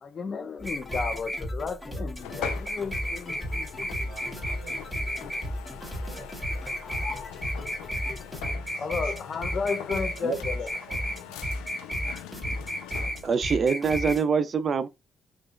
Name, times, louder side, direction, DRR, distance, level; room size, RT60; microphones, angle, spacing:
voice 1, 0.0-4.0 6.8-7.5 8.7-10.7, left 5 dB, 55° left, 0.8 m, -34 dB
sound 1, 0.6-8.5, left 3 dB, 25° left, 1.5 m, -45 dB
sound 2, 0.6-14.2, equal, 10° right, 2.0 m, -32 dB
sound 3, 2.2-13.4, left 10 dB, 90° left, 0.4 m, -43 dB
voice 2, 3.9-7.1 8.6-11.7, right 5 dB, 90° right, 2.5 m, -53 dB
voice 3, 13.2-14.9, right 5 dB, 50° right, 0.5 m, -24 dB
5.9 x 3.4 x 2.5 m
supercardioid pair, 55°, 0 cm